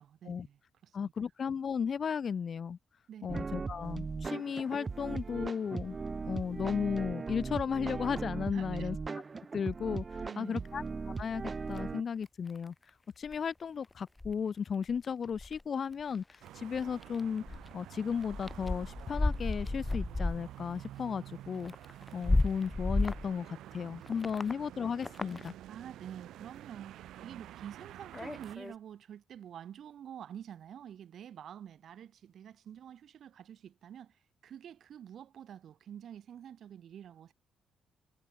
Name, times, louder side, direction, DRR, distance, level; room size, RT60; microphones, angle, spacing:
voice 1, 0.0-1.1 3.1-3.5 8.5-8.9 10.2-10.7 24.3-24.4 25.7-37.3, right 9 dB, 65° right, 4.2 m, -48 dB
voice 2, 0.9-2.8 3.2-6.0 6.2-9.0 9.5-10.8 11.2-11.4 11.7-21.7 22.1-25.5, left 6 dB, 50° left, 2.6 m, -35 dB
sound 1, 3.3-12.0, right 4 dB, 30° right, 0.8 m, -38 dB
sound 2, 11.8-11.9 12.3-12.9 13.3-13.4 13.8-13.9 14.2-14.3 14.8-15.6 16.0-16.5 16.7-17.2 17.5-17.7 18.1-20.5 20.7-20.8 21.6-23.3 24.1-24.5 25.0-25.5 27.8-28.7, left 2 dB, 15° left, 0.4 m, -33 dB
sound 3, 16.4-28.6, right 13 dB, 80° right, 3.7 m, -50 dB
cardioid pair, 90°, 0 cm